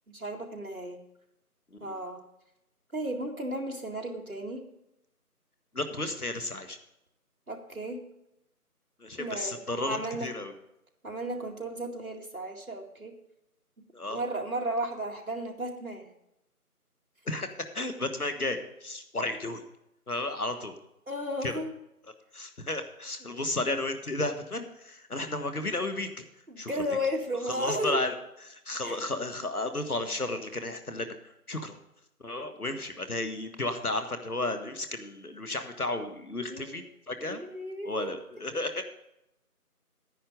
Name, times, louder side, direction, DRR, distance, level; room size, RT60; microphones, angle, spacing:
voice 1, 0.1-1.0 1.8-2.2 2.9-4.6 7.5-8.1 9.2-10.3 11.0-13.1 14.1-16.1 21.1-21.8 23.2-23.4 26.5-28.0 28.8-29.0 36.5-36.8 37.3-38.1, right 1 dB, 65° right, 1 dB, 2.2 m, -34 dB
voice 2, 5.7-6.8 9.0-10.5 13.9-14.2 17.2-17.5 17.7-19.6 20.1-20.7 21.4-21.6 22.3-26.1 26.6-26.7 27.5-28.1 28.4-31.1 31.5-31.7 32.2-37.4 37.8-38.8, left 2 dB, 75° left, 8 dB, 1.6 m, -33 dB
10.0 x 9.8 x 5.1 m, 0.83 s
figure-of-eight pair, 180°, 46 cm